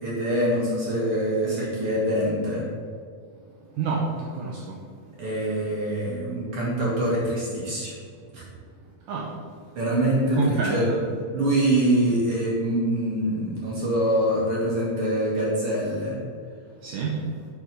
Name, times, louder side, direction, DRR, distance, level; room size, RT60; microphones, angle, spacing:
voice 1, 0.0-2.6 5.2-7.9 8.3-8.4 9.8-10.9 11.3-16.2, right 1 dB, 50° right, -5 dB, 1.9 m, -24 dB
voice 2, 3.8-4.7 9.1-9.3 10.3-11.0 16.8-17.2, right 4 dB, 80° right, -3 dB, 1.9 m, -27 dB
6.5 x 6.1 x 5.3 m, 2.1 s
omnidirectional pair, 4.8 m